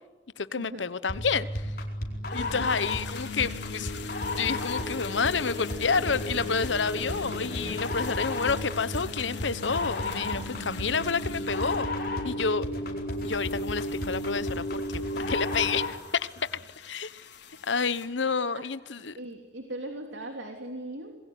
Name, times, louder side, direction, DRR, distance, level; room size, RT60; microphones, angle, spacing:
voice 1, 0.4-1.7 2.3-3.9 4.4-11.9 12.2-12.7 13.2-16.0 16.8-17.3 17.6-19.2, left 5 dB, 85° left, 15 dB, 1.0 m, -29 dB
sound 1, 1.1-16.0, left 1 dB, 50° left, 4.7 m, -33 dB
sound 2, 2.3-18.1, left 5 dB, 70° left, 4.4 m, -45 dB
Snare drum, 3.6-8.2, equal, 40° right, 5.6 m, -49 dB
voice 2, 19.1-21.2, right 1 dB, 90° right, 4 dB, 3.1 m, -39 dB
27.5 x 21.0 x 9.5 m, 1.2 s
head